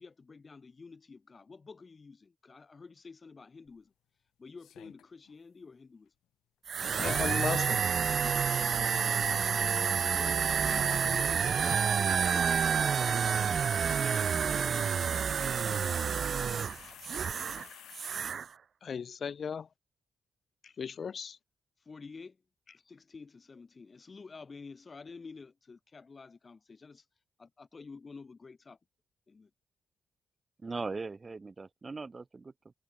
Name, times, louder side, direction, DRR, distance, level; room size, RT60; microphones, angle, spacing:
voice 1, 0.0-3.9 4.4-6.1 9.9-13.7 14.0-15.1 21.8-22.4 22.7-27.1 27.4-28.8 29.3-29.5, left 4 dB, 40° left, 2.0 m, -50 dB
sound 1, 3.7-3.8 4.6-5.3 6.8-18.2, left 12 dB, 85° left, 4.7 m, -50 dB
sound 2, 6.7-17.7 17.9-18.4, right 7 dB, 60° right, 0.4 m, -29 dB
voice 2, 7.0-7.8 18.8-19.7 20.8-21.4, left 6 dB, 60° left, 0.4 m, -36 dB
voice 3, 30.6-32.7, right 4 dB, 35° right, 3.8 m, -40 dB
cardioid pair, 60°, 0 cm